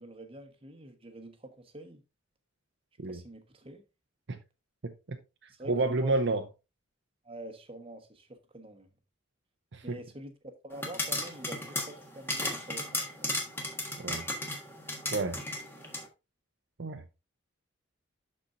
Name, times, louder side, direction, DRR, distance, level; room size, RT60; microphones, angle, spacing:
voice 1, 0.0-2.0 3.1-3.8 5.5-6.3 7.2-8.9 9.8-13.4, right 1 dB, 25° right, 1.2 m, -46 dB
voice 2, 4.8-5.2 5.6-6.4 9.7-10.0 14.0-14.2 15.1-15.4 16.8-17.0, right 3 dB, 60° right, 0.7 m, -30 dB
sound 1, 10.7-16.1, left 1 dB, 10° left, 1.5 m, -35 dB
12.0 x 4.4 x 2.6 m
head